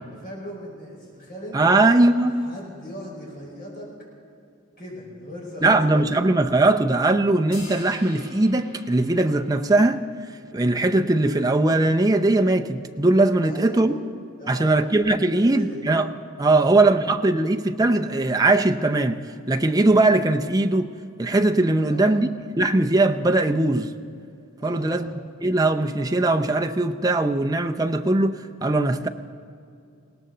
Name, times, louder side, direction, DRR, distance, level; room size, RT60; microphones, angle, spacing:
voice 1, 0.1-3.9 4.8-6.3 13.4-14.0 14.4-14.8 15.3-15.8 16.5-16.8 21.7-22.2 24.6-25.1, equal, 40° left, -3 dB, 4.9 m, -38 dB
voice 2, 1.5-2.3 5.6-10.1 10.5-13.9 14.5-16.1 16.4-19.2 19.5-20.9 21.2-22.3 22.6-23.9 24.6-25.1 25.4-29.1, right 2 dB, 15° right, 6 dB, 0.5 m, -20 dB
sound 1, 7.5-10.1, left 2 dB, 65° left, 5.1 m, -44 dB
20.5 x 18.0 x 3.9 m, 2.4 s
head